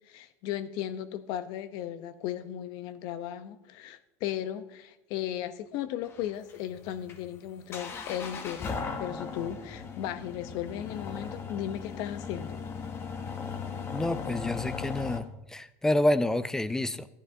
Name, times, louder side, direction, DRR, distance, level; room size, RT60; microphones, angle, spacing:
voice 1, 0.1-12.6, left 11 dB, 55° left, 13 dB, 0.7 m, -36 dB
sound 1, 6.0-15.2, left 5 dB, 30° left, 0.9 m, -38 dB
voice 2, 13.9-17.1, left 1 dB, 5° left, 15 dB, 0.4 m, -28 dB
14.5 x 10.0 x 2.6 m, 0.97 s
supercardioid pair, 135°, 8 cm